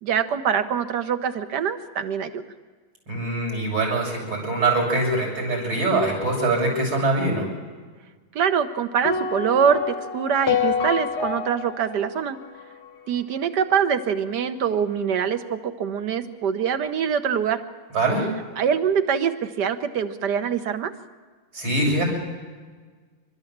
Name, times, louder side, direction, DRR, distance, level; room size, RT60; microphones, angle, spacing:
voice 1, 0.0-2.4 8.3-12.4 13.1-17.6 18.6-20.9, right 7 dB, 60° right, 10 dB, 1.4 m, -24 dB
voice 2, 3.1-7.5 17.9-18.3 21.5-22.0, right 2 dB, 80° right, -2 dB, 7.5 m, -23 dB
sound 1, 9.0-13.3, left 7 dB, 85° left, 2.1 m, -28 dB
28.5 x 13.0 x 7.3 m, 1.5 s
omnidirectional pair, 2.3 m